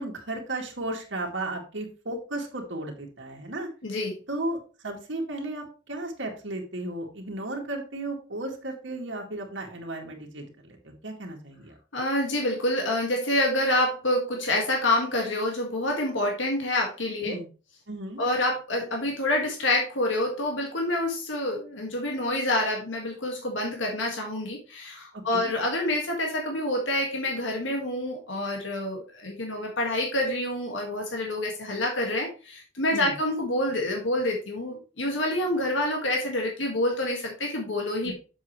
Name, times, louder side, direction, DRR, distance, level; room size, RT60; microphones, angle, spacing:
voice 1, 0.0-3.7 4.3-4.6 4.8-11.7 17.2-17.5 17.9-18.2 25.1-25.5 32.9-33.1 38.0-38.1, right 2 dB, 75° right, 0 dB, 2.2 m, -34 dB
voice 2, 3.8-4.2 11.9-17.4 18.2-38.1, left 1 dB, 90° left, 1 dB, 1.8 m, -27 dB
7.4 x 7.3 x 3.1 m, 0.34 s
head